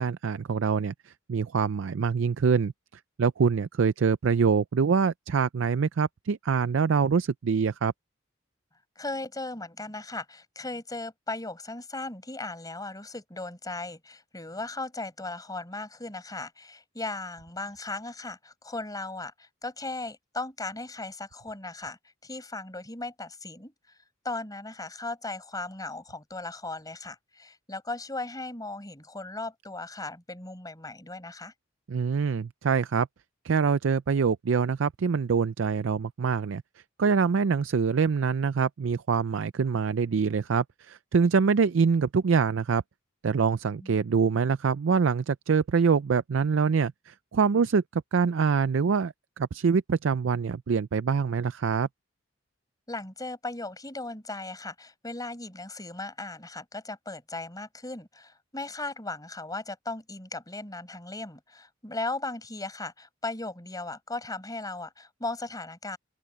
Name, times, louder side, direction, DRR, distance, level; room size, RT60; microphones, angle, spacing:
voice 1, 0.0-2.7 3.2-7.9 31.9-33.1 33.4-36.6 37.0-42.8 43.2-51.9, right 5 dB, 70° right, 0.4 m, -25 dB
voice 2, 9.0-31.5 43.8-44.1 52.9-66.0, left 2 dB, 20° left, 5.5 m, -37 dB
open air
head